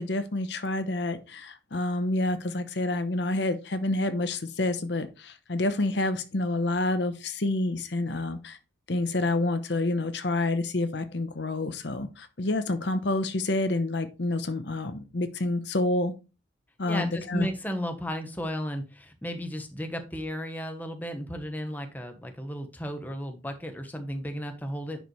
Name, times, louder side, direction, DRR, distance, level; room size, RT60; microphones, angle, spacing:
voice 1, 0.0-8.6 8.9-16.1 16.8-17.5, left 2 dB, 65° left, 10 dB, 0.9 m, -28 dB
voice 2, 16.9-25.0, equal, 10° left, 6 dB, 1.1 m, -34 dB
10.5 x 5.2 x 3.2 m, 0.30 s
head